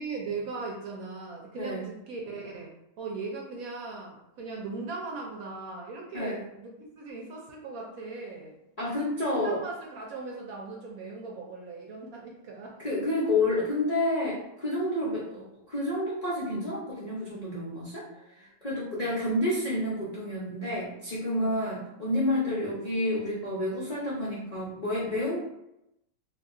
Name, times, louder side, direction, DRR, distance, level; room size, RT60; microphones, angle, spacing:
voice 1, 0.0-2.7 3.0-8.6 9.3-12.9 15.3-15.4 16.6-16.7 18.1-18.3 19.1-19.3 21.4-21.7 22.5-22.7, right 3 dB, 70° right, -1 dB, 0.9 m, -39 dB
voice 2, 1.6-1.9 6.1-6.4 8.8-9.6 12.8-18.0 18.6-25.4, left 1 dB, 70° left, -8 dB, 0.3 m, -29 dB
2.7 x 2.3 x 3.6 m, 0.85 s
omnidirectional pair, 1.9 m